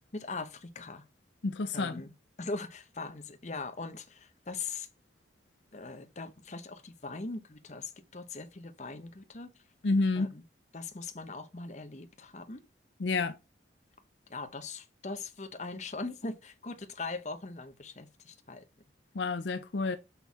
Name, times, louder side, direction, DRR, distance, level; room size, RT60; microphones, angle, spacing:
voice 1, 0.1-1.0 1.7-2.1 2.4-4.9 5.7-9.5 10.1-10.4 10.7-12.6 14.3-18.6, left 3 dB, 35° left, 0.9 m, -40 dB
voice 2, 1.4-1.9 9.8-10.3 13.0-13.4 19.1-20.0, left 3 dB, 70° left, 0.6 m, -29 dB
6.3 x 5.5 x 4.1 m
head